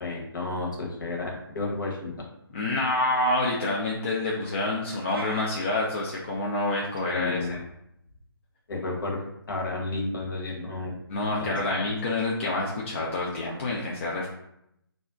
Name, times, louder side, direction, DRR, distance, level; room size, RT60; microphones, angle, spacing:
voice 1, 0.0-2.1 7.1-7.6 8.7-11.0 11.4-11.8, left 2 dB, 55° left, -1 dB, 0.9 m, -32 dB
voice 2, 2.5-7.6 11.1-14.3, left 2 dB, 30° left, -4 dB, 0.4 m, -27 dB
sound 1, 5.0-5.5, right 2 dB, 70° right, 0.5 m, -39 dB
2.4 x 2.1 x 3.5 m, 0.78 s
figure-of-eight pair, 155°, 13 cm